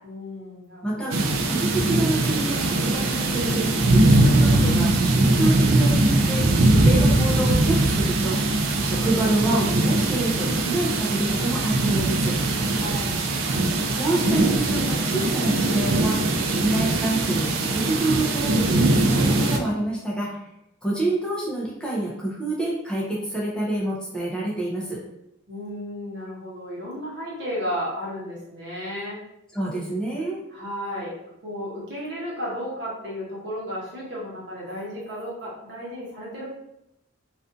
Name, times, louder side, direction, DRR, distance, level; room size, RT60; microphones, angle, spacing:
voice 1, 0.0-1.1 12.8-13.1 25.5-29.2 30.5-31.1 31.4-36.5, equal, 60° right, -5 dB, 0.9 m, -33 dB
voice 2, 0.8-1.1 1.5-8.4 8.8-12.3 13.9-20.4 20.8-25.0 29.5-30.4, right 2 dB, 5° left, -6 dB, 0.4 m, -27 dB
sound 1, 1.1-19.6, right 2 dB, 85° right, 0.4 m, -21 dB
2.4 x 2.4 x 2.5 m, 0.83 s
head